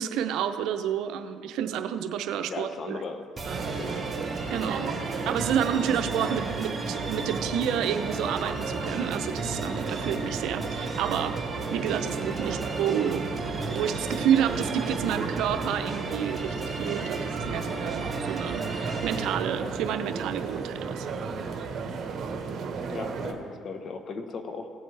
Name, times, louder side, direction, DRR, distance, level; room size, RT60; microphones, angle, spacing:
voice 1, 0.0-3.0 4.5-5.0 5.3-11.4 11.7-13.2 13.6-21.1, right 9 dB, 75° right, 8 dB, 0.6 m, -29 dB
voice 2, 2.4-3.2 3.8-4.0 4.7-4.9 12.4-12.6 22.9-24.7, left 4 dB, 50° left, 6 dB, 1.0 m, -37 dB
sound 1, 3.4-19.3, right 2 dB, 20° right, 2.5 m, -35 dB
sound 2, 3.4-23.3, right 5 dB, 55° right, 1.1 m, -34 dB
17.0 x 7.7 x 3.3 m, 2.3 s
supercardioid pair, 80°, 0 cm